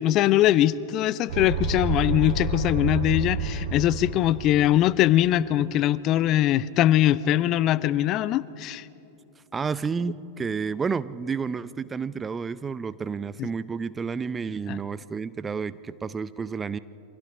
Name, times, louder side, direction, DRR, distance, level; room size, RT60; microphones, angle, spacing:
voice 1, 0.0-8.8 14.7-14.8, left 13 dB, 35° left, 19 dB, 0.5 m, -22 dB
sound 1, 1.3-4.8, right 3 dB, 60° right, 4.2 m, -29 dB
voice 2, 9.5-16.8, right 5 dB, 15° right, 16 dB, 0.5 m, -30 dB
28.5 x 24.0 x 5.0 m, 2.8 s
figure-of-eight pair, 90°, 0 cm